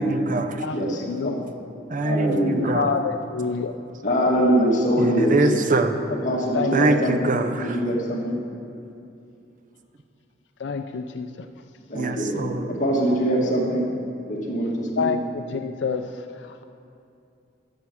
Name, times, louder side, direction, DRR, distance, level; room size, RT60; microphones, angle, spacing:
voice 1, 0.0-0.6 1.9-2.9 5.0-6.0 6.7-7.8 11.9-12.6, right 2 dB, 45° right, 8 dB, 0.6 m, -24 dB
voice 2, 0.7-1.3 2.0-2.8 4.0-5.4 6.1-7.3 7.6-8.4 11.9-13.9 14.3-15.1, equal, 45° left, -3 dB, 2.1 m, -23 dB
voice 3, 2.6-3.7 6.5-6.7 10.6-11.5 15.0-16.1 16.4-16.6, left 5 dB, 70° left, 7 dB, 0.4 m, -27 dB
11.5 x 7.0 x 6.2 m, 2.6 s
head